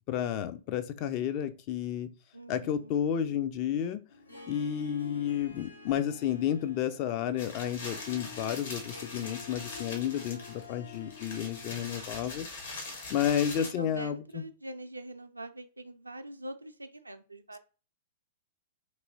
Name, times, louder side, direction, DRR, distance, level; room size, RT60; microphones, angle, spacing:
voice 1, 0.1-2.1 2.5-4.0 4.5-12.5 13.1-14.4, left 9 dB, 40° left, 0.4 m, -31 dB
voice 2, 2.3-2.9 13.1-17.6, right 1 dB, 85° right, 0.4 m, -44 dB
Harp, 4.1-12.0, left 5 dB, 85° left, 0.7 m, -49 dB
sound 1, 7.4-13.7, left 3 dB, 65° left, 1.3 m, -42 dB
3.0 x 2.8 x 2.6 m
figure-of-eight pair, 105°, 0 cm